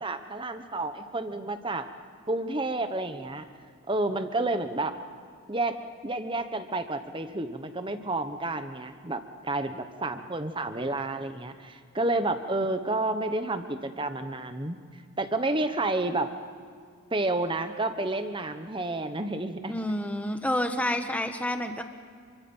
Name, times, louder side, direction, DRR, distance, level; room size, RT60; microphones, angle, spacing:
voice 1, 0.0-1.9 2.3-3.5 3.9-4.9 5.5-5.8 6.0-14.8 15.2-16.3 17.1-19.8, right 2 dB, 20° right, 9 dB, 1.2 m, -30 dB
voice 2, 19.7-21.8, left 1 dB, 5° left, 6 dB, 1.3 m, -29 dB
27.5 x 24.5 x 5.6 m, 2.2 s
head